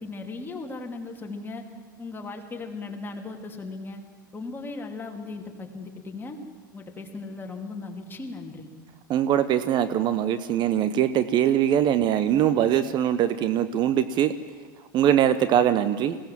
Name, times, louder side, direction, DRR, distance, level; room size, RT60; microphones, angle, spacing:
voice 1, 0.0-1.6 2.0-4.0 4.3-6.4 6.7-8.7, left 3 dB, 20° left, 2 dB, 2.8 m, -37 dB
voice 2, 9.1-14.3 14.9-16.2, right 10 dB, 45° right, 12 dB, 0.9 m, -22 dB
21.0 x 17.0 x 7.6 m, 1.5 s
hypercardioid pair, 90°, 11 cm